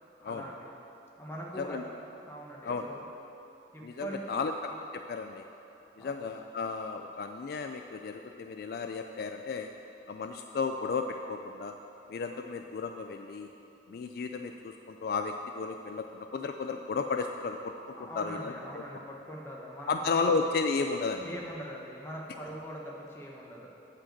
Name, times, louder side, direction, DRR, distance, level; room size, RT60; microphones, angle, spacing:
voice 1, 0.2-0.7 1.2-3.0 3.7-4.4 6.0-6.2 18.0-20.3 21.2-23.7, equal, 15° left, -3 dB, 1.1 m, -42 dB
voice 2, 3.8-5.4 6.0-9.7 10.1-11.7 12.1-13.5 13.9-17.7 18.0-18.8 19.9-21.3, left 4 dB, 55° left, 5 dB, 0.3 m, -33 dB
8.5 x 5.0 x 7.4 m, 3.0 s
head